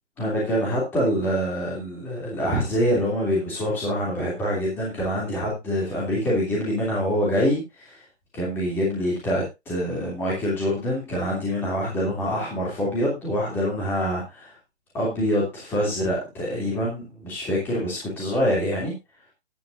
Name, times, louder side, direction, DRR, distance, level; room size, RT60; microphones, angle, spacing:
voice 1, 0.2-8.0 8.3-14.6 14.9-18.9, equal, 5° left, -5 dB, 2.8 m, -25 dB
14.5 x 11.5 x 2.6 m, 0.24 s
hypercardioid pair, 170°, 35 cm